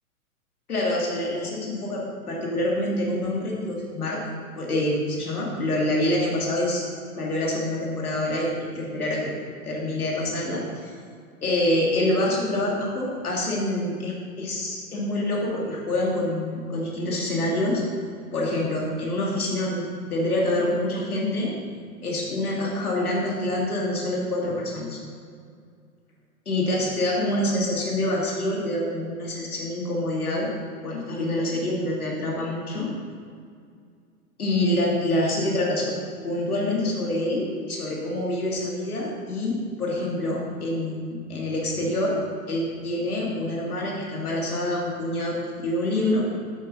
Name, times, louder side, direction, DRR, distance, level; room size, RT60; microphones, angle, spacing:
voice 1, 0.7-6.8 7.2-9.4 9.6-10.9 11.4-17.8 18.3-21.5 22.0-25.0 26.5-30.5 30.8-32.9 34.4-36.0 36.2-42.2 42.5-46.3, left 1 dB, 80° left, -3 dB, 2.8 m, -26 dB
9.2 x 8.2 x 5.6 m, 2.2 s
figure-of-eight pair, 105°, 44 cm